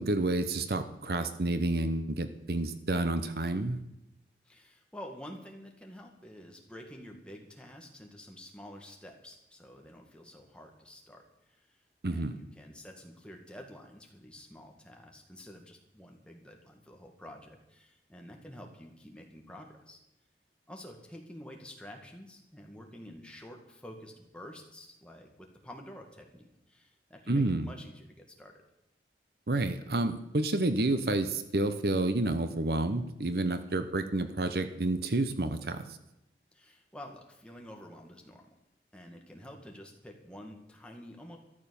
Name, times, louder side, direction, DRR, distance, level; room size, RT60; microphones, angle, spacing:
voice 1, 0.0-3.8 12.0-12.4 27.3-27.7 29.5-35.8, right 2 dB, 60° right, 10 dB, 1.0 m, -29 dB
voice 2, 4.5-11.2 11.5-11.7 12.1-20.0 20.7-28.5 36.5-38.4 38.9-41.4, left 1 dB, 5° left, 1 dB, 2.0 m, -49 dB
13.5 x 12.0 x 7.1 m, 0.87 s
head